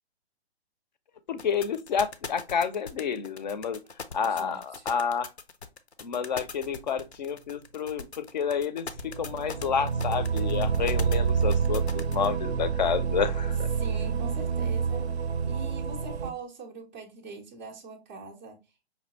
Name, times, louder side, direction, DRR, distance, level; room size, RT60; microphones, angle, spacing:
voice 1, 1.3-3.8 4.1-5.3 6.0-13.7, left 7 dB, 45° left, 0.5 m, -29 dB
sound 1, 1.4-12.3, left 5 dB, 90° left, 0.7 m, -40 dB
voice 2, 4.2-4.8 13.7-15.1 15.5-18.6, right 3 dB, 10° right, 0.4 m, -42 dB
sound 2, 9.0-16.3, right 6 dB, 85° right, 0.5 m, -28 dB
5.2 x 2.7 x 2.6 m
figure-of-eight pair, 130°, 32 cm